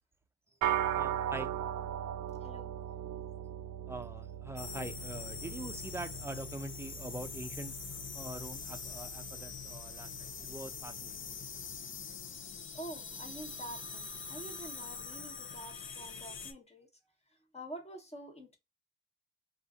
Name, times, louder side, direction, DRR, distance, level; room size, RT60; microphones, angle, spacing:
sound 1, 0.6-10.1, right 10 dB, 70° right, 0.6 m, -39 dB
voice 1, 0.9-1.5 3.9-11.2, right 1 dB, 10° right, 0.6 m, -44 dB
voice 2, 2.4-2.8 12.7-16.9 17.5-18.6, right 1 dB, 20° left, 1.3 m, -47 dB
sound 2, 4.6-16.5, left 5 dB, 40° left, 0.7 m, -44 dB
2.5 x 2.5 x 3.5 m
supercardioid pair, 60°, 30 cm